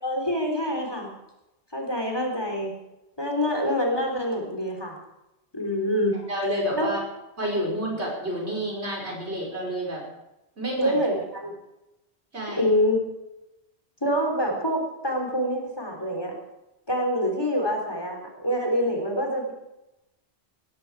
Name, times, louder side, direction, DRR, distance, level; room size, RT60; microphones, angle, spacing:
voice 1, 0.0-1.1 1.7-2.7 3.2-5.0 5.5-6.1 6.7-6.9 10.8-11.5 12.6-13.0 14.0-16.3 16.9-19.5, equal, 20° left, 2 dB, 3.7 m, -26 dB
voice 2, 6.3-7.0 7.4-10.0 10.6-11.0 12.3-12.7, equal, 85° right, -1 dB, 5.7 m, -29 dB
18.0 x 15.5 x 4.8 m, 0.93 s
omnidirectional pair, 1.1 m